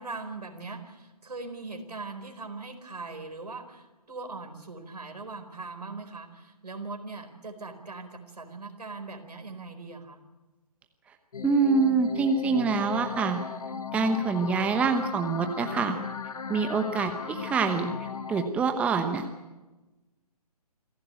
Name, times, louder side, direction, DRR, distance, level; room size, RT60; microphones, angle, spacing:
voice 1, 0.0-10.2 17.1-17.3, right 3 dB, 85° right, 6 dB, 4.6 m, -40 dB
sound 1, 11.3-18.5, left 6 dB, 65° left, 1.3 m, -37 dB
voice 2, 11.4-13.4 13.9-16.0 16.5-19.2, right 4 dB, 5° right, 6 dB, 1.0 m, -26 dB
27.0 x 14.5 x 9.1 m, 1.2 s
figure-of-eight pair, 150°, 20 cm